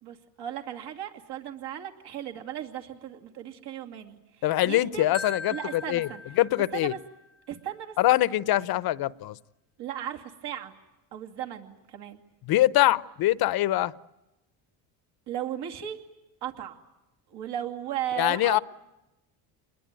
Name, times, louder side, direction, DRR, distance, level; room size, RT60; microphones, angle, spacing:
voice 1, 0.0-5.1 5.5-6.2 6.7-7.0 7.5-8.0 9.8-10.7 11.1-12.2 15.3-16.0 16.4-16.8 17.3-18.6, right 10 dB, 60° right, 2.7 m, -36 dB
voice 2, 4.4-6.1 6.4-6.9 8.0-9.4 12.5-13.9 18.2-18.6, left 15 dB, 50° left, 0.9 m, -23 dB
Marimba xylophone, 5.1-7.2, left 3 dB, 30° right, 2.0 m, -40 dB
28.0 x 21.0 x 9.1 m
supercardioid pair, 100°, 45 cm